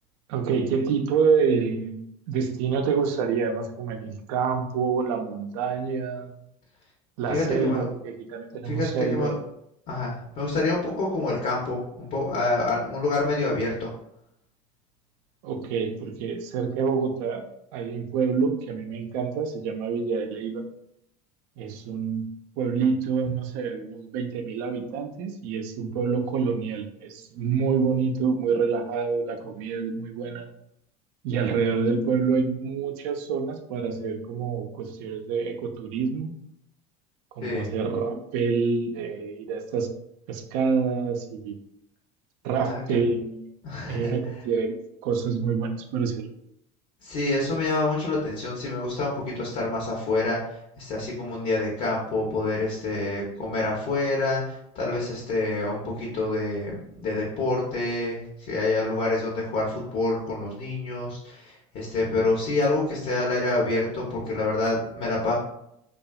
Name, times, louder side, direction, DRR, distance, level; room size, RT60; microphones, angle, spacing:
voice 1, 0.3-2.0 2.3-6.3 7.2-9.3 15.4-17.4 17.7-20.6 21.6-22.3 22.6-30.5 31.2-36.3 37.4-39.9 40.3-41.6 42.4-43.4 43.9-44.8 45.0-46.3, right 5 dB, 70° right, 6 dB, 0.5 m, -27 dB
voice 2, 7.3-7.9 8.6-9.4 9.9-13.9 37.4-37.7 42.6-43.0 43.6-44.2 47.0-65.4, left 2 dB, 50° left, -3 dB, 0.8 m, -27 dB
2.6 x 2.3 x 2.3 m, 0.77 s
supercardioid pair, 95°, 19 cm